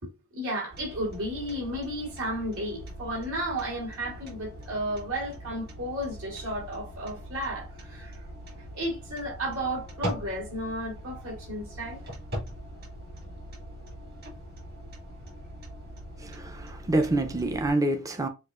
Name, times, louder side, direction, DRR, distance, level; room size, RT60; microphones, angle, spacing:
voice 1, 0.0-8.2 8.7-12.0, right 1 dB, 70° right, 2.7 m, -33 dB
sound 1, 0.7-17.7, equal, 45° right, 2.1 m, -41 dB
voice 2, 16.2-18.3, right 2 dB, 15° right, 0.5 m, -27 dB
6.5 x 2.4 x 2.4 m
head